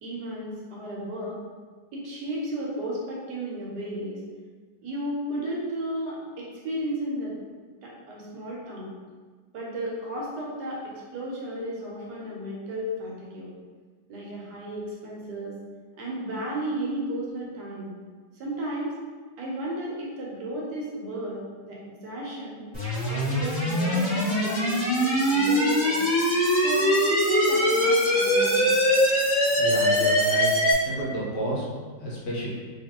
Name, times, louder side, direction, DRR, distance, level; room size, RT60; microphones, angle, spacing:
voice 1, 0.0-1.4 1.9-4.2 4.8-7.3 7.8-8.9 9.5-13.5 14.1-15.5 16.0-17.9 18.3-19.0 19.4-22.6 23.1-26.0 26.6-28.7, right 1 dB, 70° right, -4 dB, 1.3 m, -33 dB
sound 1, 22.7-30.7, equal, 15° left, 1.3 m, -22 dB
voice 2, 29.6-30.5 30.8-31.7 32.0-32.5, equal, 70° left, -5 dB, 1.5 m, -31 dB
3.8 x 3.2 x 2.9 m, 1.5 s
omnidirectional pair, 2.0 m